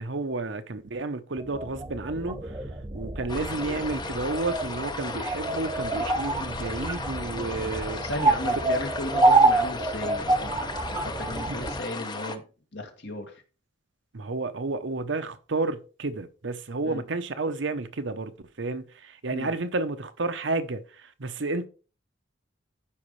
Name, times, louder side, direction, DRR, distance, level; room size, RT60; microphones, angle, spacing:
voice 1, 0.0-2.5 2.9-8.0 11.5-11.6 14.1-18.3 18.6-21.7, right 3 dB, 65° right, 0.9 m, -31 dB
sound 1, 1.4-11.8, right 2 dB, 20° right, 0.7 m, -27 dB
sound 2, 3.3-12.3, left 3 dB, 25° left, 0.8 m, -36 dB
voice 2, 8.0-10.6 10.9-12.4 12.7-13.3 16.8-17.0 19.3-19.5, left 1 dB, 65° left, 2.1 m, -35 dB
14.0 x 5.3 x 3.2 m
head